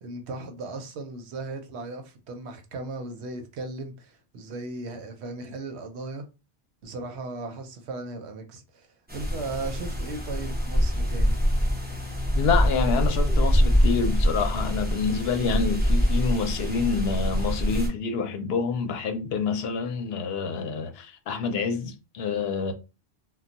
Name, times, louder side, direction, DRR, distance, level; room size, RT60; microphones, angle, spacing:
voice 1, 0.0-6.3 6.8-8.9 9.1-11.4, right 3 dB, 75° right, 0.9 m, -37 dB
sound 1, 9.1-17.9, equal, 10° right, 0.6 m, -24 dB
voice 2, 12.4-22.7, left 5 dB, 70° left, 0.8 m, -27 dB
2.2 x 2.1 x 3.8 m
omnidirectional pair, 1.1 m